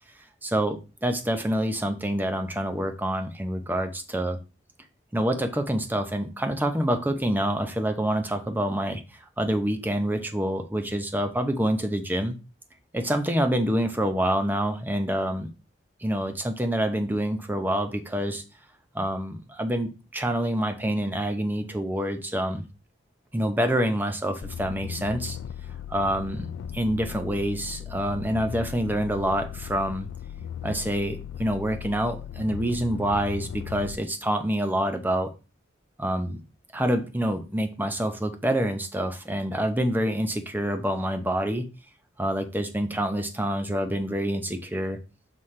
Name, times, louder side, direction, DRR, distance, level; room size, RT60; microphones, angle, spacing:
voice 1, 0.4-4.4 5.1-9.0 9.4-12.4 12.9-15.5 16.0-18.4 18.9-22.6 23.3-25.4 25.9-30.1 30.6-35.3 36.0-36.4 36.7-41.7 42.2-45.0, right 1 dB, 10° right, 7 dB, 0.7 m, -27 dB
sound 1, 24.4-34.0, left 9 dB, 85° left, 0.3 m, -37 dB
6.2 x 5.6 x 3.3 m, 0.30 s
head